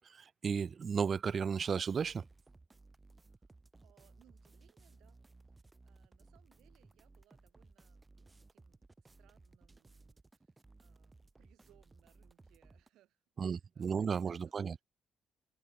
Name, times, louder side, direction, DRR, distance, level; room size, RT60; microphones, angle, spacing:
voice 1, 0.1-2.2 13.4-14.7, right 6 dB, 45° right, 0.5 m, -34 dB
sound 1, 1.9-12.9, right 3 dB, 20° right, 1.4 m, -61 dB
voice 2, 3.2-5.2 5.5-14.8, right 14 dB, 85° right, 6.0 m, -71 dB
cardioid pair, 90°, 0 cm